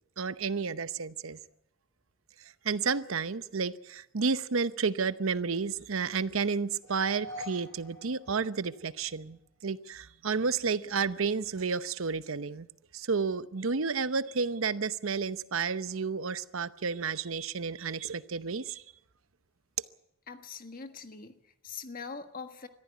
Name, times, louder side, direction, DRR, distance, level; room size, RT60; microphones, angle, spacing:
voice 1, 0.2-1.4 2.4-12.7 12.9-18.8, right 5 dB, 85° right, 0.8 m, -31 dB
sound 1, 6.8-9.1, left 1 dB, 10° left, 6.7 m, -45 dB
voice 2, 20.3-22.7, left 5 dB, 45° left, 1.5 m, -43 dB
21.5 x 14.5 x 9.3 m
head